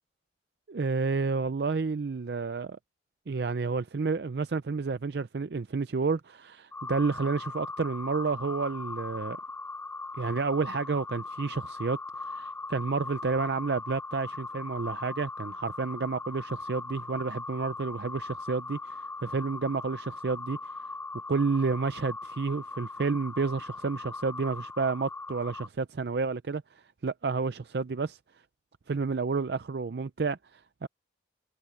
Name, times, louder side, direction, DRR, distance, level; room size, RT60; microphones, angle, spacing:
voice 1, 0.7-2.8 3.3-9.4 10.2-20.7 21.3-26.6 27.0-28.2 28.9-30.9, right 4 dB, 60° right, 0.5 m, -30 dB
sound 1, 6.7-25.7, left 3 dB, 10° left, 0.3 m, -39 dB
head